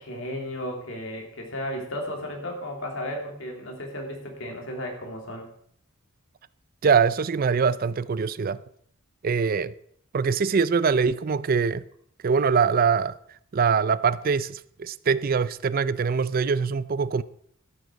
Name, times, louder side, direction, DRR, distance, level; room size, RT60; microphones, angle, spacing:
voice 1, 0.0-5.5, left 1 dB, 65° left, 3.1 m, -34 dB
voice 2, 6.8-8.6 9.2-9.7 10.1-11.8 12.2-13.2 13.5-17.2, right 5 dB, 40° right, 0.4 m, -23 dB
13.0 x 8.0 x 6.3 m
head